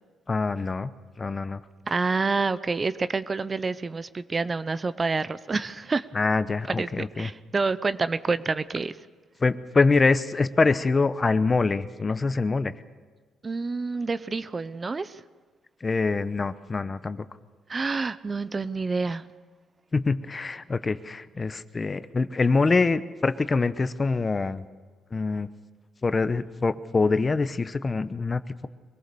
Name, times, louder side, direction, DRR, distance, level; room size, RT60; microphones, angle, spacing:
voice 1, 0.3-0.9 1.2-1.6 6.1-7.3 9.4-12.7 15.8-17.2 19.9-24.7 25.1-25.5 26.0-28.7, left 4 dB, 30° left, 13 dB, 0.8 m, -24 dB
voice 2, 1.9-6.1 6.7-9.0 13.4-15.2 17.7-19.2, right 4 dB, 30° right, 15 dB, 0.7 m, -28 dB
23.5 x 18.0 x 6.9 m, 1.4 s
cardioid pair, 90°, 0 cm